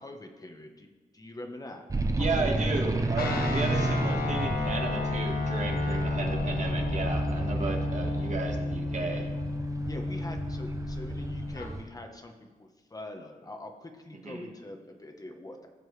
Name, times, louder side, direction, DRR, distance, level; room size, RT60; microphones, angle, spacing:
voice 1, 0.0-1.8 2.1-3.1 9.9-15.7, left 1 dB, 25° left, 3 dB, 1.0 m, -43 dB
sound 1, 1.9-11.8, right 2 dB, 20° right, 0.6 m, -32 dB
voice 2, 2.2-9.3 14.1-14.5, right 3 dB, 50° right, 1 dB, 1.7 m, -34 dB
Guitar, 3.2-11.7, left 3 dB, 85° left, 1.1 m, -32 dB
17.5 x 7.5 x 3.3 m, 1.3 s
wide cardioid pair, 130°, 15 cm